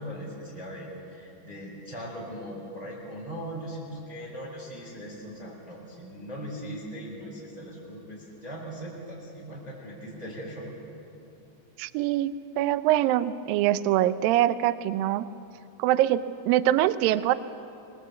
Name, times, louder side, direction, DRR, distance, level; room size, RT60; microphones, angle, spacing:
voice 1, 0.0-10.7, equal, 10° right, -4 dB, 5.0 m, -39 dB
voice 2, 11.8-15.3 15.8-17.3, right 13 dB, 90° right, 13 dB, 2.0 m, -24 dB
25.0 x 21.5 x 8.3 m, 2.7 s
omnidirectional pair, 5.0 m